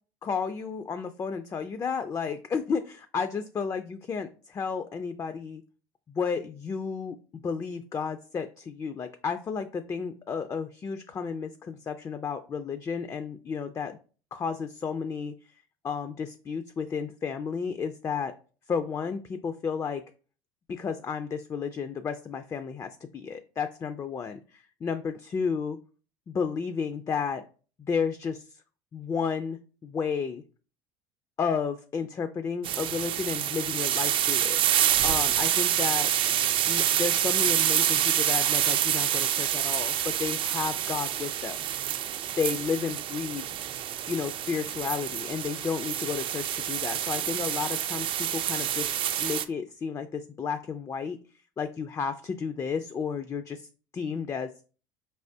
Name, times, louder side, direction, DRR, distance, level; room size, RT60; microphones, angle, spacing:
voice 1, 0.2-5.6 6.1-14.0 14.3-15.3 15.8-18.3 18.7-20.0 20.7-25.8 26.3-27.4 27.8-28.6 28.9-30.4 31.4-34.6 35.0-36.1 36.7-41.7 42.4-43.5 44.1-48.9 49.2-51.2 51.6-53.7 53.9-54.5, left 6 dB, 25° left, 9 dB, 0.4 m, -32 dB
sound 1, 32.6-49.4, right 11 dB, 50° right, 0.5 m, -27 dB
4.6 x 3.4 x 2.7 m, 0.38 s
supercardioid pair, 90°, 12 cm